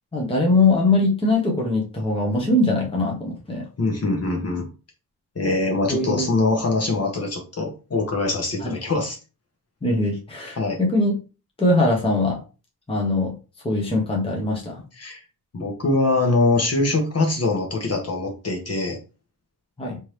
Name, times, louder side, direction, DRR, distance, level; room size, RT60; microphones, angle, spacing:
voice 1, 0.1-3.7 5.9-6.3 8.6-8.8 9.8-11.1 11.6-12.4 12.9-13.3 13.6-14.8 19.8-20.0, left 2 dB, 15° left, -2 dB, 1.0 m, -21 dB
voice 2, 3.8-4.7 5.3-9.2 10.6-10.8 15.0-15.2 15.5-19.0, left 2 dB, 40° left, 1 dB, 1.2 m, -23 dB
3.5 x 3.0 x 3.2 m, 0.32 s
wide cardioid pair, 125°, 38 cm